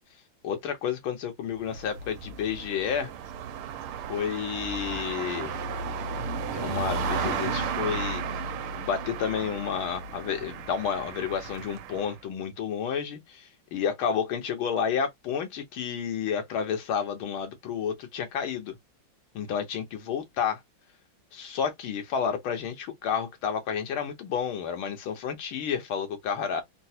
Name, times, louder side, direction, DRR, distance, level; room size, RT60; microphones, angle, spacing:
voice 1, 0.4-3.1 4.1-5.6 6.5-8.2 8.8-18.8 19.4-20.6 21.3-26.6, left 7 dB, 75° left, 1.8 m, -30 dB
sound 1, 1.5-12.1, right 5 dB, 85° right, 1.5 m, -34 dB
4.5 x 2.0 x 2.8 m
omnidirectional pair, 2.3 m